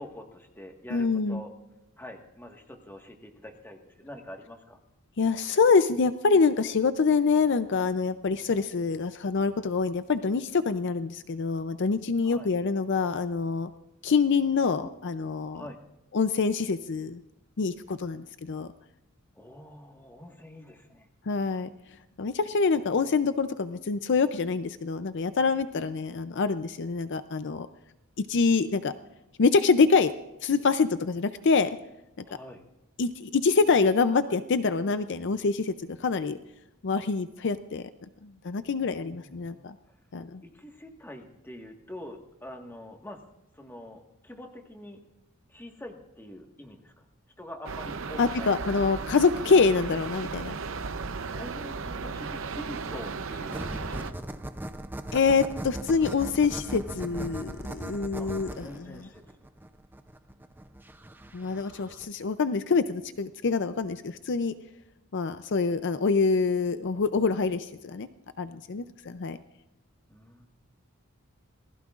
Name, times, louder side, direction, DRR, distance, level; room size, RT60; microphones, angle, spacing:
voice 1, 0.0-1.5 2.0-4.8 12.2-12.5 15.5-15.8 19.3-21.1 25.8-25.9 32.2-32.6 38.9-39.7 40.4-43.2 43.6-45.0 45.5-47.0 47.4-48.5 51.3-53.9 58.2-59.2 61.0-61.5 70.1-70.5, left 1 dB, 10° left, 2 dB, 1.5 m, -45 dB
voice 2, 0.9-1.4 5.2-13.7 14.0-15.7 16.1-17.2 17.6-18.7 21.3-21.7 22.2-27.7 28.2-28.9 29.4-30.1 30.4-31.8 32.2-32.3 33.0-36.4 36.8-37.8 38.2-39.7 40.1-40.4 48.2-50.5 55.1-59.1 61.3-64.5 65.1-68.1 68.4-69.4, left 4 dB, 55° left, 11 dB, 0.5 m, -25 dB
sound 1, 47.6-54.1, right 4 dB, 65° right, 0.7 m, -35 dB
sound 2, 53.5-62.0, right 1 dB, 10° right, 0.6 m, -39 dB
27.0 x 19.5 x 2.5 m, 0.94 s
head